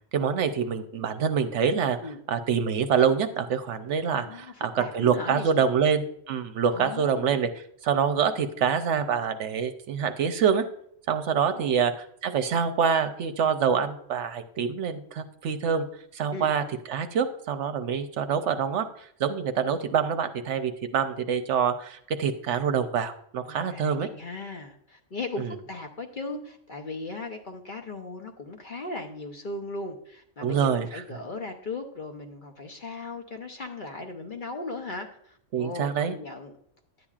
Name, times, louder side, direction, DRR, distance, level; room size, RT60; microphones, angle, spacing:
voice 1, 0.1-2.0 2.3-10.6 11.1-15.9 16.1-18.8 19.2-24.1 25.4-25.5 30.4-31.0 35.5-36.2, right 7 dB, 70° right, 9 dB, 0.9 m, -26 dB
voice 2, 4.2-5.5 6.7-7.5 11.5-11.7 16.3-16.5 23.4-36.5, left 3 dB, 45° left, 4 dB, 0.8 m, -38 dB
11.0 x 8.6 x 2.4 m, 0.69 s
omnidirectional pair, 1.3 m